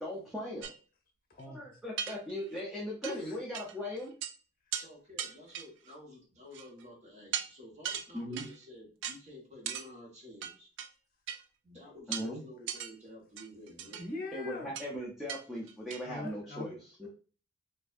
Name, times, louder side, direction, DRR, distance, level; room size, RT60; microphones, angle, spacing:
voice 1, 0.0-0.7 1.5-4.1 8.1-8.5 12.1-12.4 14.3-17.1, left 1 dB, ahead, -5 dB, 0.7 m, -39 dB
sound 1, 0.6-0.8 1.4-1.5 2.0-2.6 3.0-3.2 3.5-3.7 4.0-4.3 4.7-4.9 5.2-5.9 6.5-6.8 7.3-7.5 7.8-8.5 9.0-9.2 9.7-9.9 10.4-10.9 11.3-11.4 12.1-12.3 12.7-12.9 13.4-14.1 14.7-14.9 15.3-15.4 15.7-16.0, right 9 dB, 60° right, 0.4 m, -38 dB
voice 2, 1.3-1.7 3.0-3.4 14.0-14.8 16.0-16.7, left 2 dB, 45° left, 1 dB, 0.9 m, -41 dB
voice 3, 4.7-10.7 11.6-14.0, left 1 dB, 35° right, -2 dB, 1.3 m, -51 dB
4.4 x 2.6 x 2.5 m, 0.38 s
head